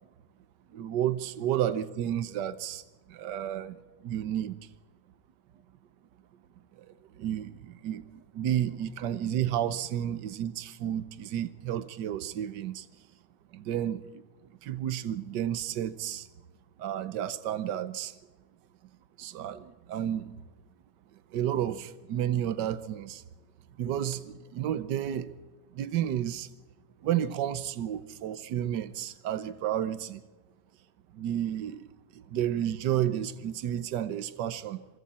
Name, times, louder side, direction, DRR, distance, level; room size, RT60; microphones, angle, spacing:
voice 1, 0.7-2.8 3.1-3.8 4.0-4.5 7.2-8.0 8.3-12.8 13.5-14.0 14.6-16.3 16.8-18.1 19.2-20.3 21.3-23.2 23.8-25.3 25.7-26.5 27.0-30.2 31.2-31.8 32.3-34.8, right 11 dB, 80° right, 14 dB, 1.5 m, -31 dB
26.5 x 24.5 x 4.3 m, 1.2 s
omnidirectional pair, 1.9 m